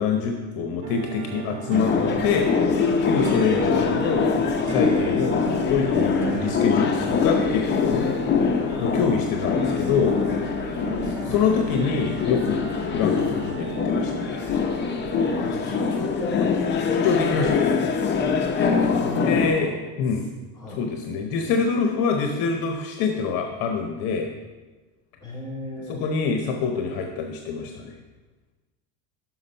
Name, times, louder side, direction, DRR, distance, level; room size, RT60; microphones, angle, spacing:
voice 1, 0.0-1.9 2.2-2.5 3.0-4.3 4.6-5.4 5.7-8.1 8.8-10.2 11.1-12.6 12.9-14.1 17.0-17.7 19.1-19.7 20.0-20.2 20.7-24.3 25.9-28.0, left 5 dB, 55° left, 3 dB, 0.8 m, -25 dB
sound 1, 0.8-15.4, right 7 dB, 70° right, 0.7 m, -37 dB
sound 2, 1.7-19.5, left 5 dB, 25° left, 0.6 m, -24 dB
voice 2, 15.3-16.8 18.8-19.7 20.5-20.8 25.2-26.0, left 2 dB, 10° left, -4 dB, 2.7 m, -35 dB
6.0 x 5.8 x 5.3 m, 1.2 s
cardioid pair, 145°, 42 cm